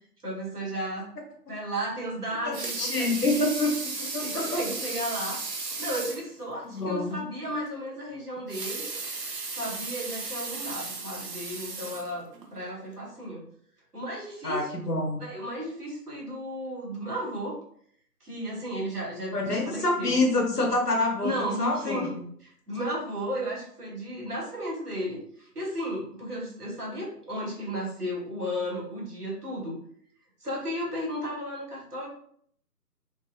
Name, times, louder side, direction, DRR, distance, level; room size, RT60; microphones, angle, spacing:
voice 1, 0.2-1.1 1.5-3.5 4.0-5.4 5.8-8.9 9.5-13.4 13.9-14.8 15.2-17.6 18.2-20.3 21.2-22.1 22.4-29.8 30.4-32.1, equal, 70° right, -4 dB, 1.2 m, -34 dB
Water tap faucet / Sink (filling or washing) / Liquid, 2.3-6.3 6.8-6.9 7.2-7.3 8.4-12.5 13.1-13.2, right 3 dB, 85° right, 0.7 m, -35 dB
voice 2, 2.5-3.7 4.1-4.6 6.7-7.2 14.4-15.2 19.3-22.2, left 2 dB, 70° left, 2 dB, 0.8 m, -27 dB
2.5 x 2.0 x 2.4 m, 0.64 s
figure-of-eight pair, 180°, 48 cm